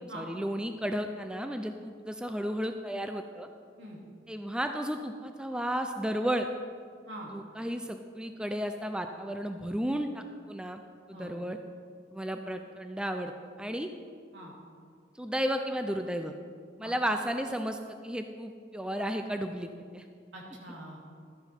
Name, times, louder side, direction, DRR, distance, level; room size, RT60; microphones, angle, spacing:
voice 1, 0.0-3.5 4.3-6.5 7.3-10.8 11.1-11.6 12.1-13.9 15.2-16.3 16.8-20.0, equal, 5° right, 6 dB, 0.4 m, -33 dB
voice 2, 20.3-21.0, right 1 dB, 80° right, -2 dB, 2.7 m, -44 dB
13.0 x 9.5 x 4.5 m, 2.1 s
head